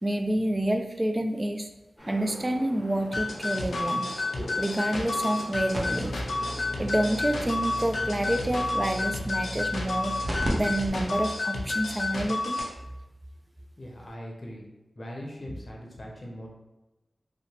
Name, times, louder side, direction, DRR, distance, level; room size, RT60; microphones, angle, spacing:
voice 1, 0.0-1.7 2.1-4.1 4.6-6.2 6.8-10.2 10.5-12.6, right 1 dB, 25° right, 5 dB, 0.3 m, -28 dB
sound 1, 2.0-8.7, equal, 5° left, 1.0 m, -43 dB
sound 2, 3.1-12.7, left 2 dB, 90° left, 0.3 m, -30 dB
sound 3, 5.7-10.5 10.9-11.0 11.6-11.7 12.3-12.4 12.6-12.8 14.1-14.2, equal, 50° right, 0.7 m, -36 dB
voice 2, 13.8-14.6 15.0-16.5, equal, 50° left, -2 dB, 0.6 m, -40 dB
2.8 x 2.0 x 2.8 m, 0.99 s
cardioid pair, 40°, 0 cm